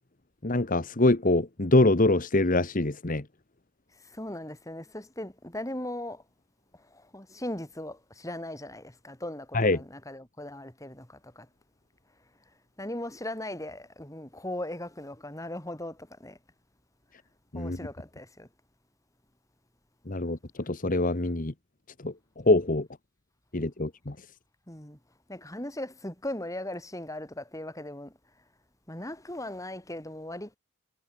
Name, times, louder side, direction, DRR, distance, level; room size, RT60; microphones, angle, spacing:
voice 1, 0.4-3.2 9.5-9.8 17.5-17.8 20.1-20.4 20.7-21.5 22.0-22.1 22.5-22.9 23.5-24.1, left 2 dB, 40° left, 1.3 m, -24 dB
voice 2, 4.1-6.2 6.9-11.5 12.8-16.4 17.5-18.5 24.7-25.0 25.3-28.1 28.9-30.6, left 1 dB, 15° left, 4.0 m, -38 dB
head